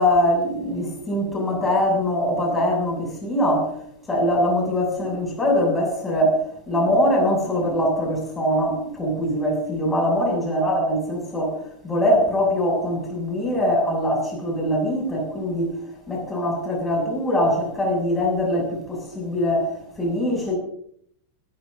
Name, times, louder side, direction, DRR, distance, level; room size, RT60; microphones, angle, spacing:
voice 1, 0.0-3.7 4.1-6.4 6.7-11.6 11.8-15.7 16.1-20.6, left 1 dB, 15° left, 7.3 m, -22 dB
22.0 x 15.0 x 2.8 m
figure-of-eight pair, 90°, 0 cm